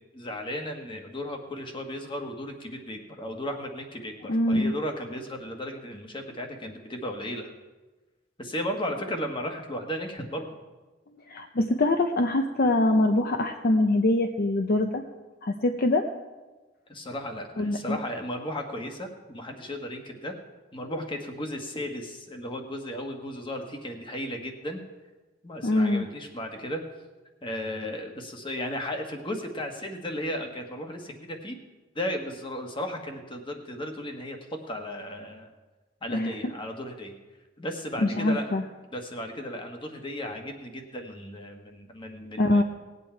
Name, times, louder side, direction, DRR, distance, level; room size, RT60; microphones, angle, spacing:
voice 1, 0.1-7.5 8.4-10.5 16.9-20.3 20.7-24.8 25.4-26.8 27.4-31.6 31.9-34.4 34.7-35.5 36.0-37.1 37.6-38.6 38.9-42.6, equal, 25° left, 3 dB, 1.4 m, -35 dB
voice 2, 4.3-4.7 11.3-15.0 15.4-16.0 17.6-18.0 25.6-26.1 36.1-36.3 38.0-38.6 42.4-42.6, left 2 dB, 50° left, 5 dB, 0.6 m, -23 dB
18.5 x 8.3 x 4.5 m, 1.2 s
head